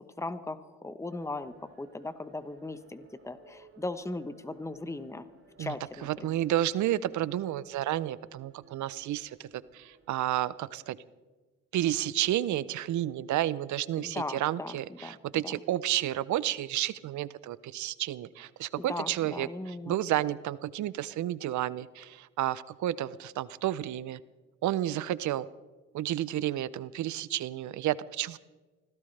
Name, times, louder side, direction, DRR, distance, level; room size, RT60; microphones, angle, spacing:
voice 1, 0.0-5.3 5.6-6.4 14.0-14.8 15.0-15.2 15.4-15.5 18.8-20.0, left 2 dB, 10° left, 12 dB, 1.0 m, -38 dB
sound 1, 1.1-10.4, right 3 dB, 45° right, 4.0 m, -60 dB
voice 2, 6.0-9.5 9.7-11.0 11.7-24.2 24.6-25.5 25.9-28.4, right 13 dB, 70° right, 18 dB, 0.6 m, -31 dB
24.5 x 16.5 x 3.3 m, 1.3 s
cardioid pair, 90°, 30 cm